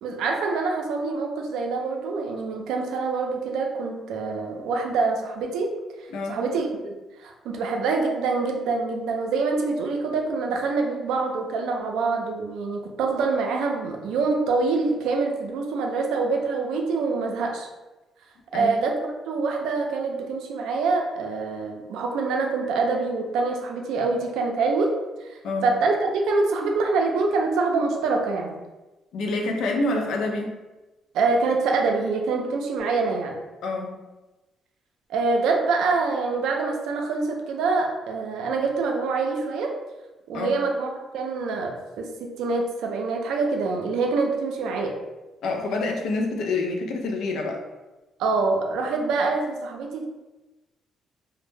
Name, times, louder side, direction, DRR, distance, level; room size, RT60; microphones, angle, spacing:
voice 1, 0.0-5.7 6.3-6.9 7.2-17.7 18.5-24.9 25.3-28.5 31.1-33.4 35.1-39.7 40.3-44.9 48.2-50.1, right 4 dB, 85° right, 2 dB, 0.4 m, -25 dB
voice 2, 29.1-30.6 33.6-34.0 40.3-40.6 45.4-47.6, left 2 dB, 80° left, 2 dB, 0.4 m, -27 dB
2.1 x 2.0 x 3.1 m, 1.1 s
cardioid pair, 90°, 0 cm